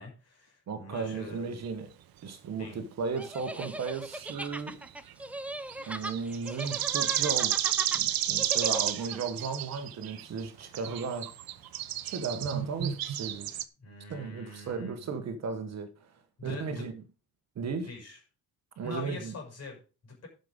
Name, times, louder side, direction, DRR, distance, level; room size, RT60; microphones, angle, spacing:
voice 1, 0.0-1.5 2.6-2.8 13.8-15.1 16.4-16.9 17.6-18.2 18.8-20.3, left 3 dB, 40° left, 6.2 m, -44 dB
voice 2, 0.7-1.9 2.2-4.8 5.9-11.3 12.0-13.6 14.1-16.1 16.4-16.9 17.5-17.9 18.8-19.3, right 5 dB, 40° right, 1.4 m, -35 dB
sound 1, 1.6-1.7 4.2-5.1 5.7-10.5 10.7-13.6, right 12 dB, 65° right, 1.0 m, -32 dB
sound 2, 3.2-9.2, right 1 dB, 5° right, 0.5 m, -39 dB
12.0 x 6.8 x 5.2 m
cardioid pair, 175°, 39 cm